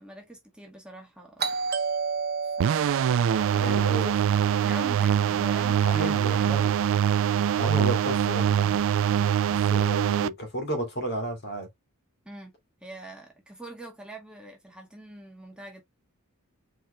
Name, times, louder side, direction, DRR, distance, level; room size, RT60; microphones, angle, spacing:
voice 1, 0.0-1.6 2.4-3.0 3.5-4.1 4.6-6.7 12.2-12.5 12.8-15.8, right 1 dB, 5° right, 1.4 m, -43 dB
Doorbell, 1.4-6.0, right 5 dB, 45° right, 1.2 m, -33 dB
sound 1, 2.6-10.3, right 9 dB, 60° right, 0.3 m, -23 dB
voice 2, 3.5-4.1 5.8-6.7 7.5-9.0 9.5-11.7, right 1 dB, 50° left, 2.5 m, -32 dB
4.6 x 4.4 x 2.3 m
head